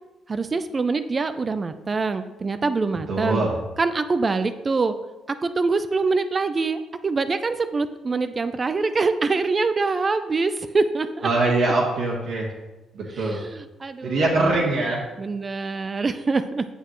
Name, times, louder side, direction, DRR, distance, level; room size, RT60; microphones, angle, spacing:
voice 1, 0.3-3.4 3.8-4.9 5.4-11.3 13.1-14.8 15.2-16.7, right 4 dB, 35° right, 10 dB, 0.5 m, -25 dB
voice 2, 3.1-3.5 11.2-12.5 12.9-13.4 14.0-15.0, right 2 dB, 70° right, -4 dB, 1.5 m, -22 dB
8.1 x 6.7 x 3.1 m, 1.1 s
cardioid pair, 90°, 0 cm